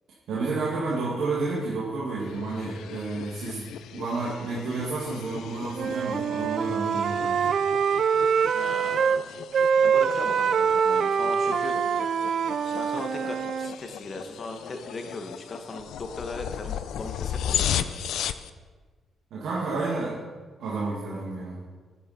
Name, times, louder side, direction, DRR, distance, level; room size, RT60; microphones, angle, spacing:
voice 1, 0.3-7.5 19.3-20.2 20.6-21.6, right 3 dB, 80° right, -7 dB, 2.1 m, -30 dB
sound 1, 2.2-18.5, left 10 dB, 85° left, 0.4 m, -36 dB
Wind instrument woodwind instrument, 5.7-9.2 9.5-13.7, right 6 dB, 55° right, 0.3 m, -24 dB
voice 2, 8.5-9.2 9.5-12.2 12.6-18.1, left 2 dB, 35° left, 5 dB, 1.2 m, -38 dB
9.8 x 7.9 x 4.3 m, 1.4 s
cardioid pair, 115°, 0 cm